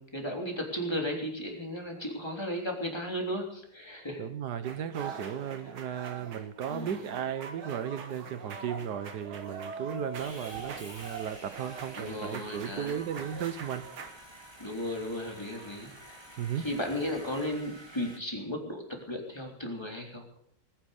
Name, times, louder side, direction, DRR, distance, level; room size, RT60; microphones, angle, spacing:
voice 1, 0.0-4.3 6.7-7.0 11.9-13.1 14.6-16.2 16.5-20.2, left 1 dB, 10° left, 0 dB, 3.3 m, -35 dB
voice 2, 4.2-13.9 16.4-16.7, right 9 dB, 60° right, 13 dB, 1.4 m, -35 dB
sound 1, 4.6-14.1, right 5 dB, 80° right, 2.4 m, -43 dB
Sawing, 10.2-18.2, right 1 dB, 15° right, 2.0 m, -49 dB
20.0 x 9.9 x 6.5 m, 0.67 s
omnidirectional pair, 2.2 m